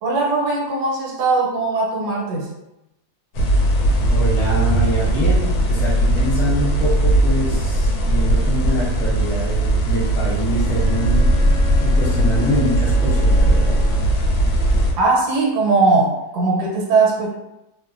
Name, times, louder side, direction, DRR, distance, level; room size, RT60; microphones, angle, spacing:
voice 1, 0.0-2.5 15.0-17.3, right 3 dB, 80° right, -1 dB, 1.2 m, -19 dB
sound 1, 3.3-14.9, right 1 dB, 85° left, 1.2 m, -18 dB
voice 2, 4.1-13.8, equal, ahead, -9 dB, 0.6 m, -25 dB
Bowed string instrument, 10.4-14.2, right 1 dB, 65° left, 1.0 m, -36 dB
2.8 x 2.1 x 2.4 m, 0.89 s
omnidirectional pair, 1.7 m